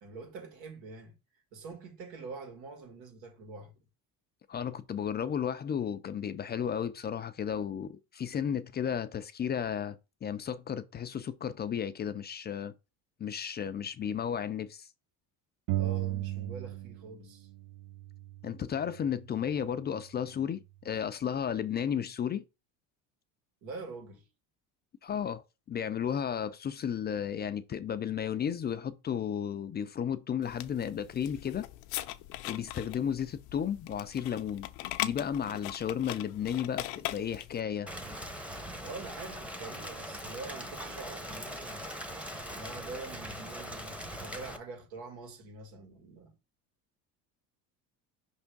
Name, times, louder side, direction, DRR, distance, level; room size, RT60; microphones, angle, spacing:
voice 1, 0.0-1.2 1.5-3.8 15.7-17.5 23.6-24.3 38.8-41.9 42.5-46.4, right 3 dB, 85° right, 2.4 m, -45 dB
voice 2, 4.5-10.0 10.2-12.7 13.2-14.9 18.4-22.4 25.0-31.7 32.5-34.7 35.0-37.9, left 8 dB, 25° left, 0.4 m, -33 dB
sound 1, 15.7-17.2 17.4-19.2, right 15 dB, 60° right, 0.4 m, -36 dB
sound 2, 30.4-37.6, left 16 dB, 85° left, 0.7 m, -40 dB
Rain, 37.9-44.6, equal, 5° right, 0.8 m, -41 dB
5.4 x 3.5 x 5.2 m
cardioid pair, 125°, 37 cm